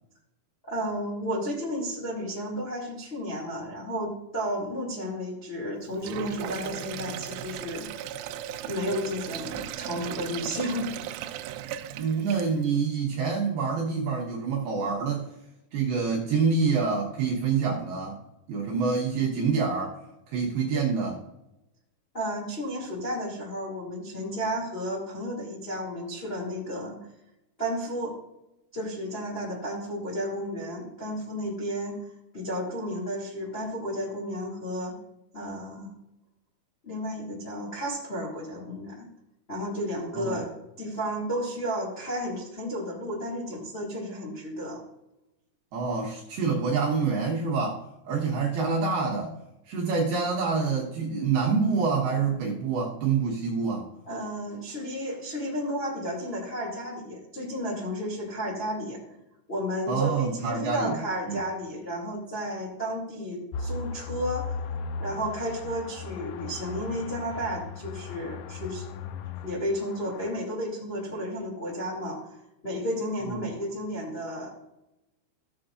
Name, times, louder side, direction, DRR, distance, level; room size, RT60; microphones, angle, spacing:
voice 1, 0.6-7.9 8.6-10.9 22.1-27.0 27.6-28.2 28.7-32.1 32.3-34.9 35.3-35.9 36.8-39.1 39.5-44.8 54.1-59.0 59.5-64.6 65.0-68.9 69.4-72.4 72.6-74.7, equal, 40° left, -5 dB, 0.9 m, -32 dB
Sink (filling or washing), 5.9-12.8, right 11 dB, 85° right, 2.7 m, -37 dB
voice 2, 11.9-15.3 15.7-18.2 18.5-20.0 20.3-21.2 40.1-40.5 45.7-49.4 49.7-53.9 59.9-61.0 61.3-61.4 73.3-73.4, right 5 dB, 70° right, -3 dB, 2.6 m, -27 dB
sound 1, 63.5-70.3, left 5 dB, 85° left, 2.6 m, -37 dB
16.0 x 7.6 x 2.5 m, 0.89 s
omnidirectional pair, 5.9 m